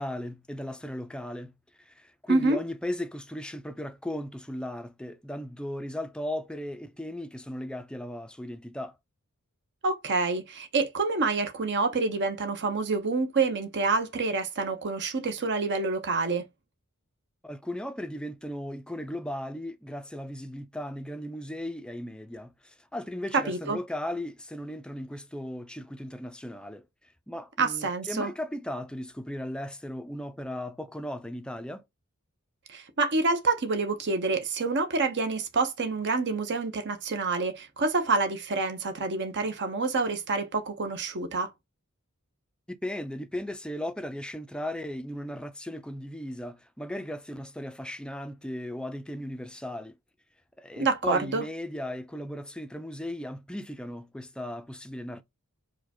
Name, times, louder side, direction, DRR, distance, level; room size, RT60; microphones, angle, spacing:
voice 1, 0.0-1.5 1.9-9.0 17.4-26.8 27.3-31.8 42.7-49.9 50.6-55.2, left 1 dB, 5° left, 0.4 m, -36 dB
voice 2, 9.8-16.4 23.3-23.8 27.6-28.3 32.7-41.5 50.8-51.4, right 3 dB, 55° right, 0.8 m, -27 dB
4.8 x 2.2 x 4.2 m
head